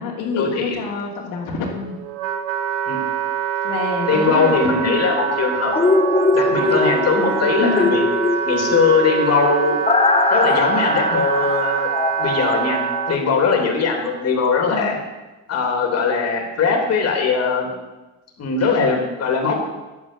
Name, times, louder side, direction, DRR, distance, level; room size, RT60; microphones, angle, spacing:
voice 1, 0.0-2.0 3.6-5.0 7.6-7.9 14.7-15.0, left 4 dB, 80° left, -3 dB, 2.9 m, -26 dB
Wind instrument woodwind instrument, 1.6-13.2, right 8 dB, 80° right, 1.2 m, -24 dB
voice 2, 4.1-5.7 6.3-8.0 8.4-9.8 10.3-11.9 12.2-15.0 15.5-17.7 18.4-19.5, left 5 dB, 50° left, 1 dB, 3.1 m, -20 dB
sound 1, 5.7-13.6 14.0-14.1, left 3 dB, 15° left, 0.9 m, -21 dB
10.5 x 8.7 x 6.8 m, 1.1 s
cardioid pair, 110°, 33 cm